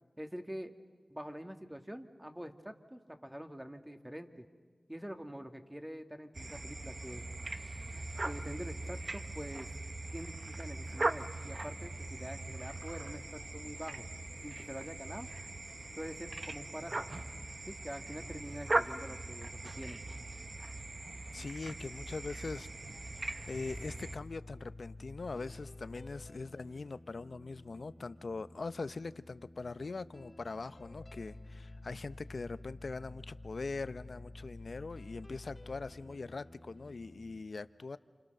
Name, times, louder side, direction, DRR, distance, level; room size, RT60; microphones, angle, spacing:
voice 1, 0.2-0.8 1.1-4.5 4.9-7.2 8.2-9.7 10.1-14.1 14.4-15.3 15.9-17.2 17.7-20.0, equal, 10° right, 6 dB, 2.1 m, -45 dB
sound 1, 6.3-24.2, right 2 dB, 50° right, 1.0 m, -40 dB
voice 2, 21.3-22.7 23.5-38.0, left 3 dB, 70° left, 13 dB, 0.7 m, -42 dB
sound 2, 23.4-37.4, left 2 dB, 35° left, 1.5 m, -51 dB
29.5 x 27.5 x 6.7 m, 1.5 s
cardioid pair, 40°, 0 cm